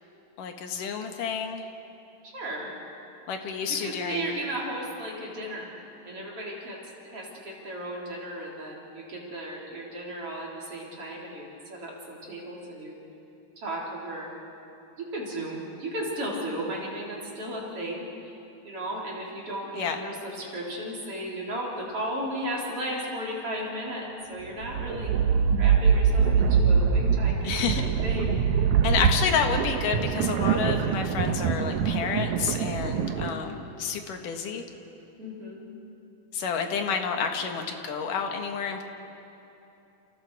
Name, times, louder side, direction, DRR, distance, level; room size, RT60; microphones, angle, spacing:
voice 1, 0.4-1.7 3.3-4.4 19.7-20.0 27.4-27.8 28.8-34.6 36.3-38.8, left 6 dB, 65° left, 4 dB, 2.9 m, -29 dB
voice 2, 2.3-2.7 3.7-5.7 6.0-6.8 7.0-11.4 11.7-13.0 13.6-14.3 15.0-18.0 18.6-25.1 25.6-28.4 33.0-33.4 35.2-35.6, right 1 dB, 40° right, -3 dB, 4.3 m, -35 dB
sound 1, 24.5-33.4, right 6 dB, 70° right, 2.1 m, -24 dB
29.5 x 28.5 x 4.8 m, 2.9 s
omnidirectional pair, 4.1 m